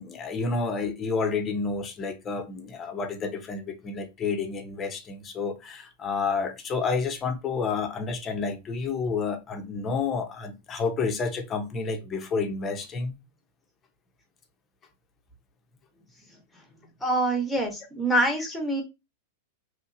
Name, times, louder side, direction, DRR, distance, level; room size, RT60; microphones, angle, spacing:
voice 1, 0.0-13.1, left 4 dB, 20° left, 0.7 m, -30 dB
voice 2, 16.3-16.6 17.0-18.8, right 1 dB, 5° left, 1.1 m, -26 dB
3.1 x 2.8 x 2.5 m
supercardioid pair, 150°, 0 cm